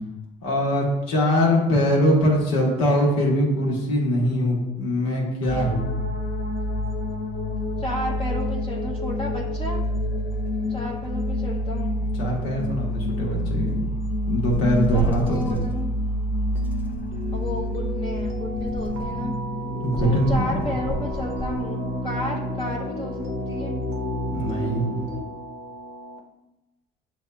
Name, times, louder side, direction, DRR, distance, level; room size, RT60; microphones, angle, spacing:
voice 1, 0.4-5.8 12.2-13.8 14.3-15.6 19.8-20.5 24.3-24.9, equal, 85° left, -2 dB, 1.3 m, -22 dB
sound 1, 5.5-25.2, left 1 dB, 55° left, 1.2 m, -28 dB
voice 2, 7.8-9.8 10.7-12.0 14.8-15.9 17.3-19.4 20.0-23.2 23.5-23.7, left 1 dB, 25° left, -1 dB, 0.6 m, -32 dB
sound 2, 14.5-15.7 16.6-17.9 18.5-19.2 20.0-21.6, right 3 dB, 10° right, 0.7 m, -32 dB
sound 3, 16.5-26.2, right 2 dB, 85° right, 0.7 m, -37 dB
7.5 x 2.7 x 2.3 m, 1.0 s
supercardioid pair, 75°, 19 cm